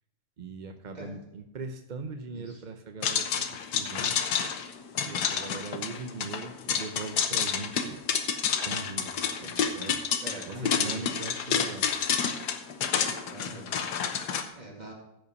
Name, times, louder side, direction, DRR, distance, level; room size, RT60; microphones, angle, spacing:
voice 1, 0.4-4.2 5.0-8.0 8.6-10.0 10.5-11.9, right 4 dB, 50° right, 6 dB, 0.5 m, -40 dB
voice 2, 2.3-2.6 9.4-9.8 10.2-11.1 13.3-13.7 14.5-14.9, right 1 dB, 25° right, -1 dB, 2.3 m, -42 dB
sound 1, 3.0-14.4, left 7 dB, 85° left, 1.5 m, -29 dB
14.5 x 5.6 x 5.2 m, 0.89 s
omnidirectional pair, 1.7 m